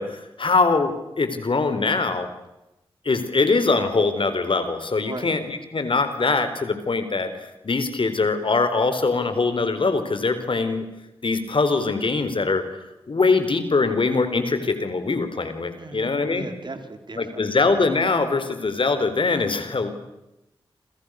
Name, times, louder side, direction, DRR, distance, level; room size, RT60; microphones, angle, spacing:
voice 1, 0.0-2.3 3.0-10.9 11.2-12.6 13.1-16.5 17.2-19.9, left 3 dB, 60° left, 10 dB, 4.4 m, -22 dB
voice 2, 15.8-17.4, right 3 dB, 50° right, 7 dB, 4.4 m, -37 dB
28.5 x 27.5 x 6.6 m, 0.91 s
cardioid pair, 45°, 10 cm